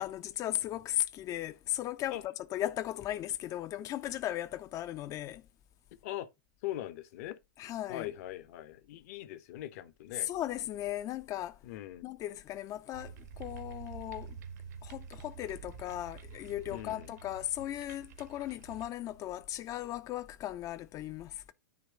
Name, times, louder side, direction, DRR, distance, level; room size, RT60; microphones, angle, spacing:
voice 1, 0.0-5.4 7.6-8.1 10.2-11.6 12.0-14.4 14.8-21.5, left 13 dB, 35° left, 0.6 m, -37 dB
voice 2, 6.6-7.4 7.9-10.3 11.6-12.1 16.7-17.1, left 14 dB, 55° left, 1.0 m, -41 dB
sound 1, 12.9-19.4, right 6 dB, 60° right, 1.4 m, -48 dB
9.6 x 3.2 x 6.1 m
figure-of-eight pair, 95°, 10 cm